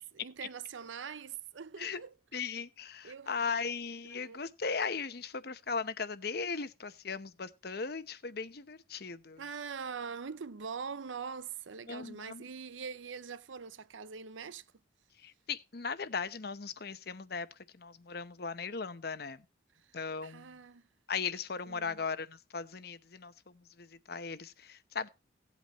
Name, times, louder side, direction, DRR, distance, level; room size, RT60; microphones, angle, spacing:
voice 1, 0.1-2.1 3.0-3.3 4.0-4.4 9.4-14.6 20.2-20.8 21.7-22.0, right 6 dB, 85° right, 0.6 m, -43 dB
voice 2, 2.3-9.4 11.9-12.4 15.2-17.5 17.7-19.4 19.9-20.5 21.1-25.1, left 5 dB, 55° left, 0.8 m, -38 dB
17.0 x 8.4 x 3.1 m
head